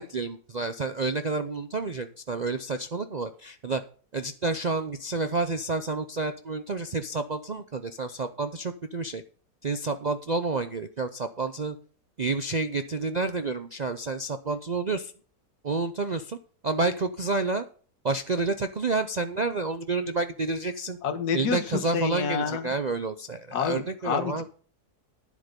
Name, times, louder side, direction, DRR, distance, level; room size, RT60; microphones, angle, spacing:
voice 1, 0.0-3.8 4.1-9.2 9.6-11.8 12.2-15.1 15.6-16.4 16.6-17.7 18.0-21.0 21.3-24.4, right 3 dB, 60° right, 10 dB, 0.4 m, -29 dB
voice 2, 21.0-22.6 23.5-24.3, left 6 dB, 75° left, 7 dB, 1.8 m, -28 dB
10.5 x 7.7 x 5.2 m, 0.41 s
omnidirectional pair, 1.7 m